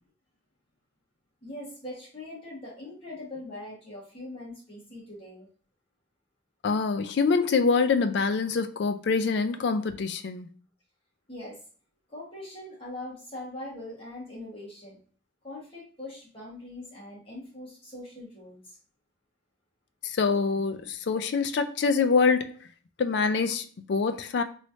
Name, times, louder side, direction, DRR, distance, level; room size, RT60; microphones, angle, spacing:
voice 1, 1.4-5.5 11.3-11.6 12.1-15.0 15.4-18.8, left 1 dB, 30° left, 1.6 m, -42 dB
voice 2, 6.6-10.5 20.0-22.5 23.0-24.4, left 4 dB, 60° left, 0.4 m, -25 dB
3.1 x 3.1 x 2.7 m
head